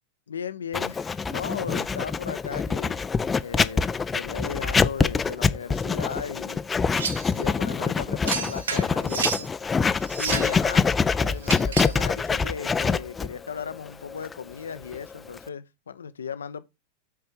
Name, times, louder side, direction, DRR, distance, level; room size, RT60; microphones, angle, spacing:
voice 1, 0.3-3.0 3.4-6.6 7.3-9.5 10.2-10.9 11.2-16.6, left 7 dB, 70° left, 0.6 m, -36 dB
Writing, 0.7-15.5, left 5 dB, 15° left, 0.4 m, -25 dB
sound 1, 7.0-7.3 8.3-9.5 10.1-10.6 11.4-12.0, right 6 dB, 65° right, 0.7 m, -30 dB
6.6 x 4.4 x 5.1 m
figure-of-eight pair, 90°, 0 cm